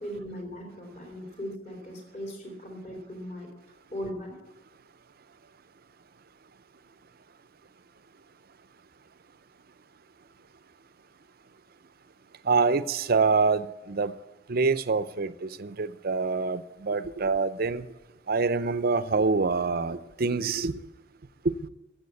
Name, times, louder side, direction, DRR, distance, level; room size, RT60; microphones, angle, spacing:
voice 1, 0.0-3.5 3.9-4.4, equal, 40° left, 1 dB, 3.5 m, -38 dB
voice 2, 12.5-14.1 14.5-17.9 18.3-20.8 21.4-21.5, right 4 dB, 50° right, 14 dB, 0.6 m, -26 dB
14.5 x 7.7 x 8.4 m, 1.1 s
head